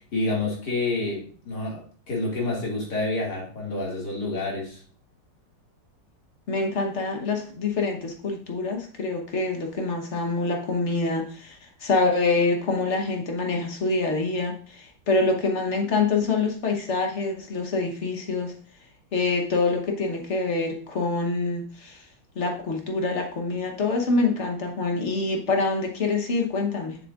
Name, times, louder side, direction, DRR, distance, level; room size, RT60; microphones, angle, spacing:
voice 1, 0.0-4.8, left 2 dB, 65° left, -3 dB, 2.8 m, -28 dB
voice 2, 6.5-18.5 19.1-22.0 22.3-27.0, left 3 dB, 45° left, 3 dB, 1.2 m, -26 dB
6.9 x 6.7 x 2.5 m, 0.43 s
omnidirectional pair, 1.9 m